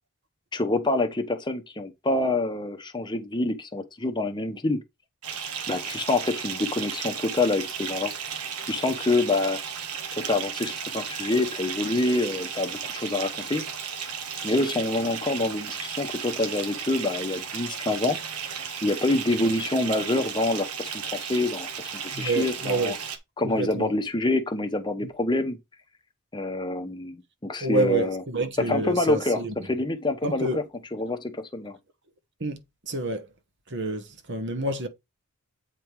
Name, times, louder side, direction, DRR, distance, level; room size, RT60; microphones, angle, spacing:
voice 1, 0.5-4.8 5.7-8.1 8.7-9.6 10.2-13.7 14.4-18.2 18.8-21.7 22.1-23.0 23.4-25.6 26.3-28.2 28.7-30.6 30.9-31.8, left 2 dB, 20° left, 0.8 m, -26 dB
Bathtub (filling or washing) / Fill (with liquid), 5.2-23.2, right 7 dB, 85° right, 1.3 m, -34 dB
voice 2, 22.1-23.0 23.4-23.9 27.6-29.7 30.2-30.6 32.4-32.6 32.9-33.3 33.7-34.9, right 2 dB, 50° right, 1.2 m, -28 dB
8.3 x 3.6 x 4.6 m
head